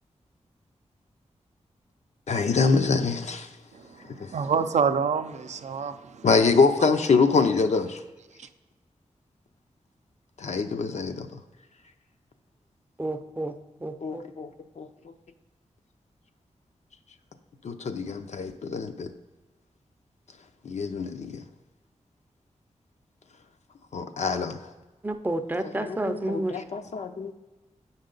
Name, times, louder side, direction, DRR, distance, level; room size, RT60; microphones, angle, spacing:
voice 1, 2.3-3.5 4.2-4.3 6.2-8.0 10.4-11.4 14.0-14.5 14.8-14.9 17.6-19.1 20.6-21.4 23.9-24.6 25.6-27.3, left 4 dB, 70° left, 7 dB, 0.6 m, -25 dB
voice 2, 3.7-6.3 8.4-8.5, right 6 dB, 70° right, 9 dB, 0.4 m, -28 dB
voice 3, 13.0-13.6 13.8-14.2 25.0-26.6, right 2 dB, 15° right, 8 dB, 0.5 m, -30 dB
8.8 x 5.5 x 3.8 m, 1.2 s
wide cardioid pair, 150°, 12 cm